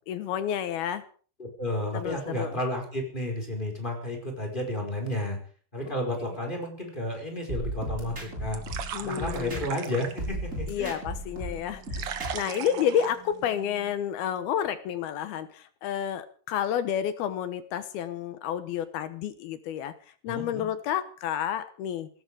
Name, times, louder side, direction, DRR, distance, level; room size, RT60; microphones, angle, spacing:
voice 1, 0.1-1.0 1.9-2.6 5.9-6.0 8.9-9.6 10.7-19.9 20.2-22.1, left 9 dB, 75° left, 12 dB, 2.8 m, -30 dB
voice 2, 1.4-5.4 5.7-8.6 9.0-11.0 20.3-20.6, left 1 dB, 10° left, 2 dB, 4.7 m, -32 dB
sound 1, 7.5-9.9 10.2-12.6, right 1 dB, 15° right, 6.7 m, -35 dB
sound 2, 8.0-13.9, right 8 dB, 70° right, 1.3 m, -40 dB
17.5 x 16.0 x 5.0 m, 0.42 s
omnidirectional pair, 4.8 m